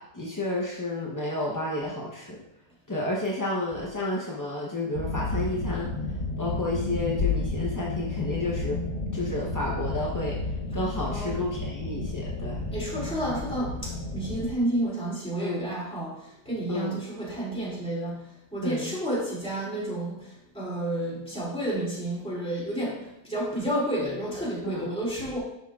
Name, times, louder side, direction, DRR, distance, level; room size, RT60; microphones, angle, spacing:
voice 1, 0.1-2.4 2.9-5.9 6.4-8.8 9.1-10.4 10.7-12.6 15.4-15.6 16.7-17.0 18.6-19.0 24.6-24.9, left 2 dB, 25° left, -4 dB, 0.4 m, -31 dB
sound 1, 4.9-14.5, left 3 dB, 80° left, 1.5 m, -31 dB
voice 2, 12.7-16.1 16.5-18.2 18.5-20.1 20.5-25.4, right 1 dB, 5° left, -7 dB, 2.8 m, -30 dB
11.0 x 5.4 x 2.4 m, 0.86 s
omnidirectional pair, 1.7 m